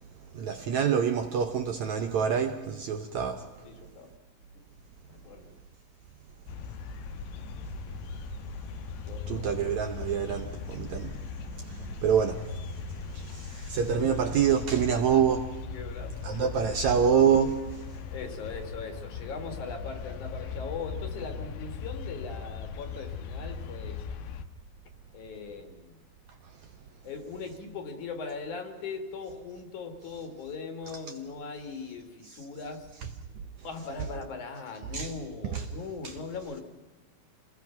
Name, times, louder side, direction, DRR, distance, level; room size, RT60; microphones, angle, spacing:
voice 1, 0.3-3.5 9.3-15.4 16.2-17.9 32.3-32.4 34.9-35.1 35.5-35.6 36.0-36.1, right 7 dB, 65° right, 1.9 m, -27 dB
voice 2, 3.6-4.1 4.5-4.7 5.1-5.6 9.1-9.5 11.8-11.9 14.0-14.1 14.8-15.2 15.7-16.4 18.1-24.2 25.1-26.0 27.0-32.9 33.6-36.6, left 4 dB, 60° left, 3.4 m, -40 dB
sound 1, 6.5-24.4, left 6 dB, 90° left, 3.0 m, -39 dB
27.5 x 20.5 x 5.9 m
omnidirectional pair, 4.2 m